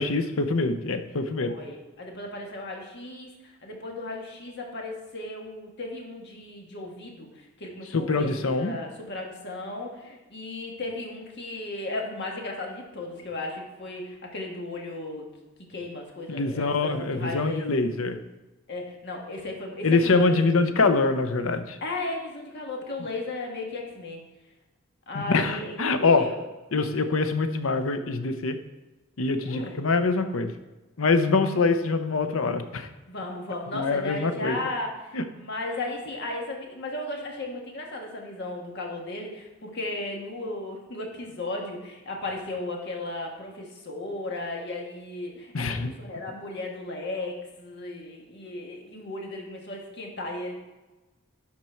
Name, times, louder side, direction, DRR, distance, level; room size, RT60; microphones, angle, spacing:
voice 1, 0.0-1.5 7.9-8.7 16.3-18.2 19.8-21.8 25.1-26.3 26.7-28.6 29.2-30.5 31.0-32.9 33.7-34.6 35.1-35.2 45.5-45.9, left 3 dB, 75° left, 9 dB, 0.7 m, -24 dB
voice 2, 1.4-15.3 15.7-17.8 18.7-20.6 21.8-24.2 25.1-26.5 29.4-29.8 33.1-34.9 35.3-50.5, left 2 dB, 55° left, 0 dB, 1.7 m, -35 dB
12.0 x 4.4 x 4.5 m, 1.1 s
head